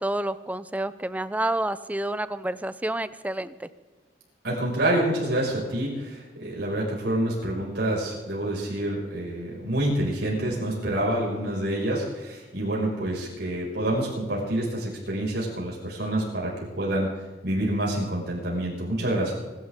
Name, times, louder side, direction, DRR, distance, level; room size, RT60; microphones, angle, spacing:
voice 1, 0.0-3.7, right 1 dB, 10° right, 14 dB, 0.6 m, -29 dB
voice 2, 4.4-17.1 17.4-19.3, right 1 dB, 65° right, -4 dB, 6.1 m, -27 dB
26.0 x 12.0 x 3.8 m, 1.3 s
head